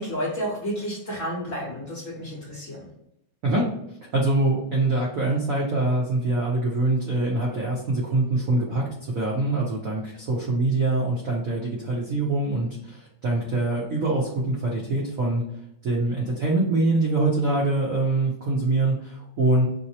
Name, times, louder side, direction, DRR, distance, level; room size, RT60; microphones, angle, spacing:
voice 1, 0.0-2.9, equal, 50° left, -5 dB, 1.0 m, -31 dB
voice 2, 4.1-8.8 9.1-15.4 15.8-19.7, right 2 dB, 65° right, -3 dB, 0.8 m, -24 dB
5.5 x 2.0 x 2.8 m, 0.80 s
omnidirectional pair, 2.4 m